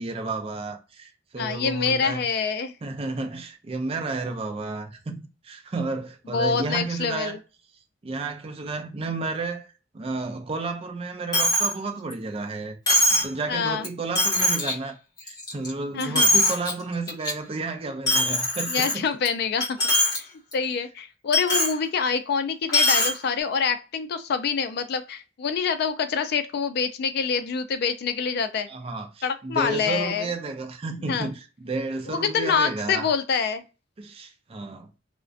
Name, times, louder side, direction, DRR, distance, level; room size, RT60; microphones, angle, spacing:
voice 1, 0.0-2.2 2.8-7.4 8.0-9.7 9.9-12.8 13.2-15.0 15.2-19.0 28.7-33.1 34.0-34.9, right 3 dB, 30° right, 0.4 m, -32 dB
voice 2, 1.4-2.7 6.3-7.4 13.5-13.9 15.9-16.3 18.7-19.8 20.2-20.3 20.5-28.7 29.2-30.3 31.1-31.3 32.1-33.6, left 6 dB, 60° left, 0.3 m, -26 dB
Coin (dropping), 11.3-11.7 12.1-12.2 12.9-13.3 13.8-13.9 14.2-14.7 15.2-15.7 16.0-16.7 17.1-17.3 18.1-19.3 19.6-20.2 20.5-20.6 21.3-21.7 22.7-23.1, left 1 dB, 20° left, 0.8 m, -21 dB
2.4 x 2.1 x 2.4 m
head